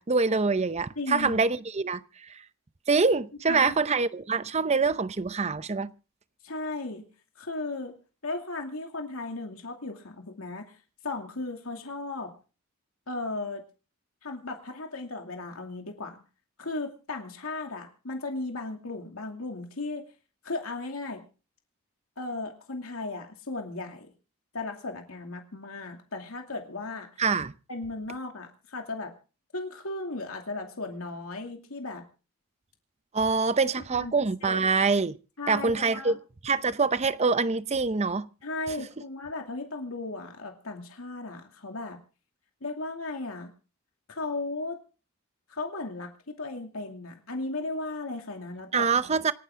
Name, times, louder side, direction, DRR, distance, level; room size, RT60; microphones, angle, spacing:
voice 1, 0.0-2.4 2.9-5.9 27.2-27.5 33.1-35.2 35.5-38.3 48.7-49.3, right 4 dB, 30° right, 0.7 m, -25 dB
voice 2, 1.0-1.4 3.5-3.8 6.4-7.1 7.4-7.9 8.2-10.7 11.0-12.3 13.1-13.6 14.2-16.2 16.6-20.0 20.4-21.2 22.2-24.1 24.5-27.1 27.7-29.1 29.5-32.1 34.0-34.1 34.4-34.7 35.4-36.2 38.4-42.0 42.6-43.5 44.1-44.8 45.5-48.9, left 2 dB, 90° left, 2.6 m, -36 dB
27.0 x 10.0 x 3.7 m
head